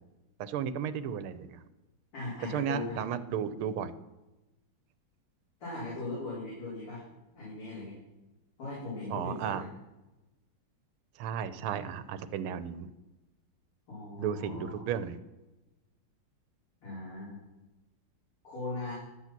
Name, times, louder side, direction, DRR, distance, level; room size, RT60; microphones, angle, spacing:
voice 1, 0.4-1.6 2.5-3.9 9.1-9.6 11.2-12.9 14.2-15.2, right 8 dB, 80° right, 13 dB, 1.5 m, -34 dB
voice 2, 2.1-3.1 5.6-7.0 7.4-8.0 8.6-9.7 13.9-14.8 16.8-17.4 18.4-18.9, left 2 dB, 85° left, -9 dB, 5.2 m, -39 dB
12.5 x 8.2 x 6.0 m, 1.0 s
omnidirectional pair, 2.4 m